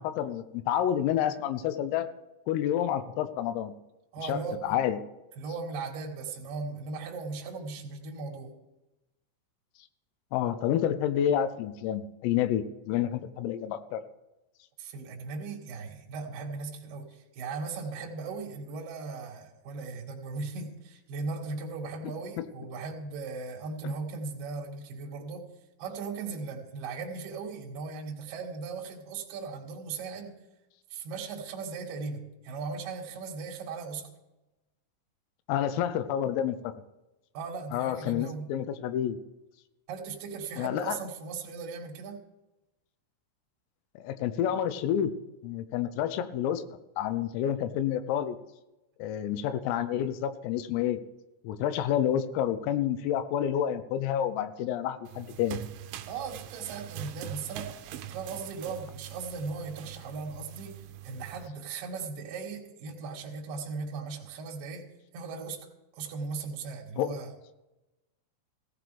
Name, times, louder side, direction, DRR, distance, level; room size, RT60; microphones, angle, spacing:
voice 1, 0.0-2.1 2.5-3.7 4.2-5.0 10.3-14.0 35.5-36.7 37.7-39.2 40.6-41.0 44.0-45.1 45.4-46.6 47.0-48.4 49.0-51.0 51.4-55.6 67.0-67.1, left 10 dB, 85° left, 12 dB, 3.5 m, -29 dB
voice 2, 4.1-4.8 5.4-8.5 14.8-25.4 25.8-30.4 30.9-34.1 37.3-38.5 39.9-42.2 56.1-57.7 58.1-64.9 65.1-65.6 65.9-67.3, right 4 dB, 55° right, 0 dB, 2.9 m, -38 dB
sound 1, 55.1-61.5, right 12 dB, 80° right, 3.0 m, -43 dB
17.0 x 14.5 x 3.4 m, 0.99 s
omnidirectional pair, 5.9 m